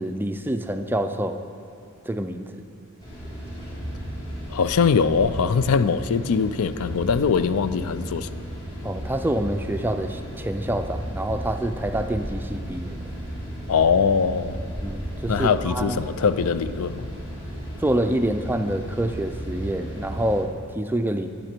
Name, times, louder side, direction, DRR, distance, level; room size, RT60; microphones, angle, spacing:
voice 1, 0.0-1.4 2.0-2.6 8.8-13.0 14.8-16.0 17.8-21.3, right 1 dB, 10° right, 7 dB, 0.3 m, -27 dB
sound 1, 3.0-20.4, equal, 20° left, 2.9 m, -34 dB
voice 2, 4.5-8.3 13.7-14.6 15.3-17.1, left 6 dB, 80° left, 14 dB, 0.4 m, -22 dB
13.5 x 8.6 x 4.5 m, 2.5 s
head